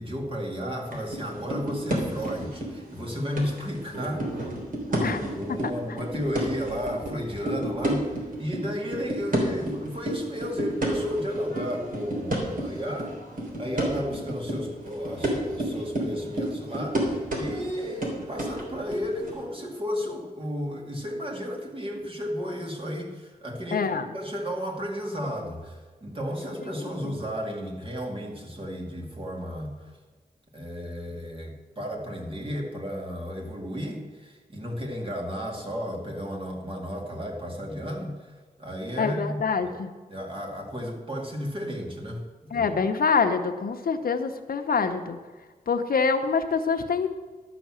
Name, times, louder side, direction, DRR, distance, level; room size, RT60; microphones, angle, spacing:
voice 1, 0.0-4.3 4.9-13.2 13.6-23.9 24.1-29.7 30.5-39.8 40.1-42.8, equal, 35° right, 0 dB, 2.3 m, -33 dB
sound 1, 0.9-1.2 1.5-3.0 3.4-8.6 8.9-19.4, right 1 dB, 60° right, 3.2 m, -30 dB
voice 2, 23.7-24.1 27.0-27.1 39.0-39.9 42.5-45.2 45.7-47.1, left 5 dB, 70° left, 6 dB, 0.9 m, -25 dB
12.5 x 6.1 x 7.6 m, 1.4 s
wide cardioid pair, 110°, 16 cm